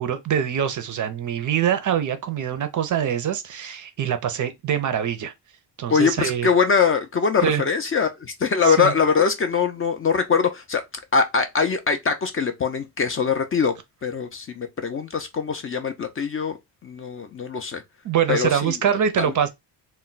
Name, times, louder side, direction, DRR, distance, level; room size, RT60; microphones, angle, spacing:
voice 1, 0.0-5.3 5.8-6.5 7.4-7.6 8.6-8.9 18.0-19.5, right 9 dB, 45° right, 0.5 m, -24 dB
voice 2, 5.9-10.8 11.1-13.7 14.0-16.6 16.8-17.8 18.3-18.8 19.2-19.3, left 5 dB, 30° left, 0.4 m, -22 dB
2.2 x 2.1 x 3.8 m
cardioid pair, 120°, 43 cm